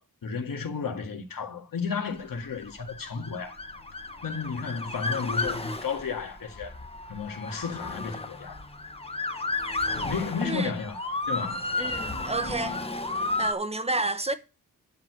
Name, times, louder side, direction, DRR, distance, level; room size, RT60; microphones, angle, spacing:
voice 1, 0.0-3.6 4.2-6.8 7.1-8.6 9.9-11.0 11.3-11.7, left 5 dB, 70° left, 2.0 m, -33 dB
Motor vehicle (road) / Siren, 2.4-13.5, left 2 dB, 15° left, 1.2 m, -33 dB
voice 2, 10.4-10.7 11.8-12.8 13.4-14.3, right 2 dB, 15° right, 1.0 m, -30 dB
10.5 x 4.8 x 7.7 m
wide cardioid pair, 125°, 35 cm